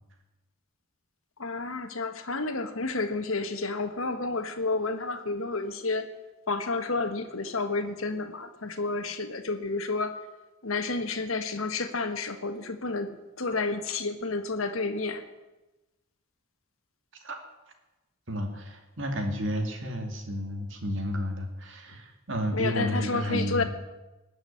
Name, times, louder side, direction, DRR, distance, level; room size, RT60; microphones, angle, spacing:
voice 1, 1.4-6.1 6.5-10.1 10.6-13.1 13.4-15.2 22.5-23.6, left 3 dB, 80° left, 7 dB, 1.4 m, -30 dB
voice 2, 18.3-23.6, equal, 60° right, 4 dB, 2.4 m, -31 dB
19.0 x 6.4 x 9.9 m, 1.1 s
head